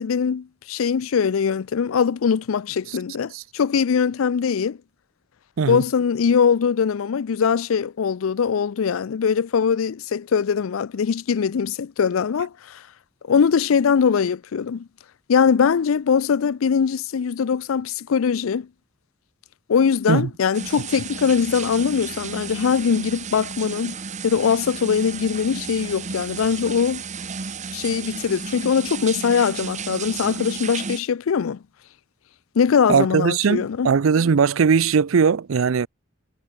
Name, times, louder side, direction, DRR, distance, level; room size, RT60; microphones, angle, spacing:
voice 1, 0.0-4.8 5.7-12.8 13.3-14.9 15.3-18.7 19.7-24.0 24.2-27.0 27.7-31.6 32.6-33.9, left 6 dB, 80° left, 0.4 m, -21 dB
sound 1, 20.5-31.0, right 6 dB, 35° right, 1.1 m, -33 dB
voice 2, 32.9-35.9, right 6 dB, 80° right, 0.5 m, -19 dB
head